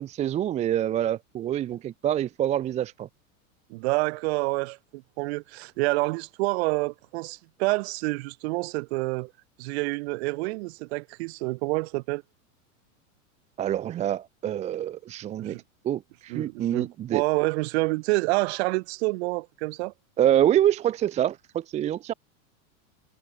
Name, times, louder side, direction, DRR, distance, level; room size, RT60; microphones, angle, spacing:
voice 1, 0.0-3.1 13.6-17.2 20.2-22.1, right 11 dB, 15° right, 0.8 m, -26 dB
voice 2, 3.7-9.3 9.6-12.2 15.4-15.6 16.3-19.9, right 25 dB, 50° right, 6.2 m, -28 dB
supercardioid pair, 165°, 42 cm